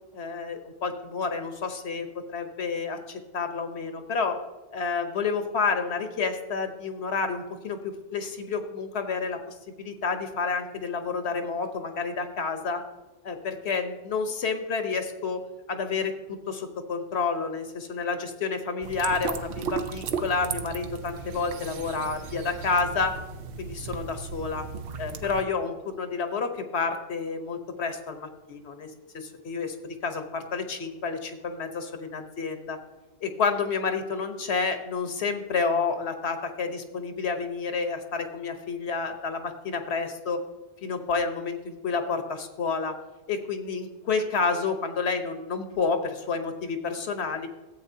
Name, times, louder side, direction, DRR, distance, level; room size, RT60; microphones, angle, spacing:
voice 1, 0.1-4.4 4.7-12.8 13.2-15.4 15.7-23.2 23.6-24.7 25.0-28.9 29.1-32.8 33.2-40.4 40.8-42.9 43.3-47.5, left 4 dB, 85° left, 7 dB, 1.2 m, -30 dB
sound 1, 18.8-25.4, right 5 dB, 65° right, 0.8 m, -35 dB
14.0 x 8.2 x 2.7 m, 1.1 s
omnidirectional pair, 1.1 m